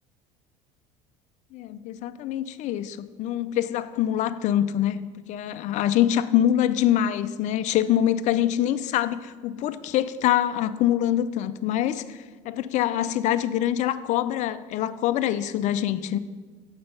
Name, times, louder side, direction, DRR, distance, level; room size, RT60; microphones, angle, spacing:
voice 1, 1.5-5.0 5.3-16.2, left 11 dB, 50° left, 13 dB, 0.4 m, -25 dB
6.8 x 4.8 x 5.4 m, 1.4 s
supercardioid pair, 85°, 16 cm